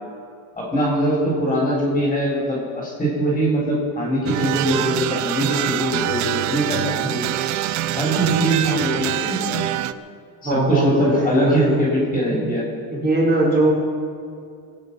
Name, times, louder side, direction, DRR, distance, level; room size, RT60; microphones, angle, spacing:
voice 1, 0.6-7.2 7.9-9.6 10.4-12.6, right 1 dB, 10° left, -4 dB, 4.0 m, -22 dB
sound 1, 4.3-9.9, right 13 dB, 40° right, 0.5 m, -24 dB
voice 2, 10.4-11.7 12.9-13.7, right 2 dB, 20° right, -4 dB, 4.6 m, -20 dB
23.5 x 9.0 x 6.0 m, 2.4 s
cardioid pair, 150°, 45 cm